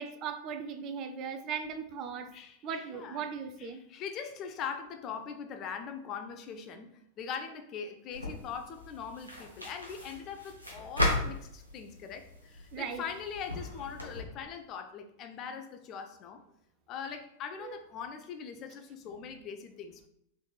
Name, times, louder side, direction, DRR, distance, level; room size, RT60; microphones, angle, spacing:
voice 1, 0.0-2.3 2.6-3.8 12.7-13.0 17.6-17.8, right 6 dB, 35° right, 8 dB, 0.3 m, -38 dB
voice 2, 2.3-3.3 3.6-16.4 16.9-20.1, left 6 dB, 35° left, 7 dB, 0.4 m, -41 dB
sound 1, 8.1-14.2, left 1 dB, 90° right, 0.7 m, -36 dB
3.3 x 3.1 x 2.3 m, 0.75 s
figure-of-eight pair, 90°, 0 cm